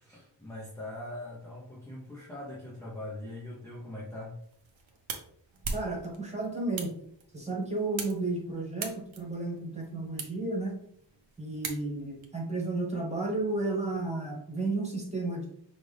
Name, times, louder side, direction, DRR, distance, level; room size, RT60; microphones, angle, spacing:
voice 1, 0.0-4.4, left 1 dB, 5° left, -6 dB, 0.8 m, -41 dB
sound 1, 4.4-12.2, right 4 dB, 80° right, 0.9 m, -42 dB
voice 2, 5.7-7.0 7.3-10.8 11.4-15.5, right 2 dB, 15° right, -2 dB, 1.4 m, -32 dB
5.8 x 2.5 x 3.3 m, 0.66 s
wide cardioid pair, 155°, 46 cm